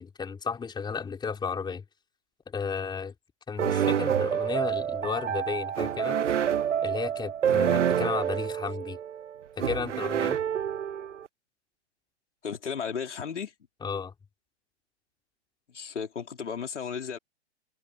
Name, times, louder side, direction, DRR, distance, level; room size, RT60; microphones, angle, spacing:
voice 1, 0.0-1.8 2.5-3.1 3.5-6.2 6.8-9.0 9.6-10.4 13.8-14.1, left 5 dB, 10° left, 3.8 m, -33 dB
sound 1, 3.6-11.3, right 9 dB, 85° right, 0.7 m, -28 dB
voice 2, 12.4-13.5 15.7-17.2, left 6 dB, 80° left, 4.6 m, -34 dB
hypercardioid pair, 120°, 35 cm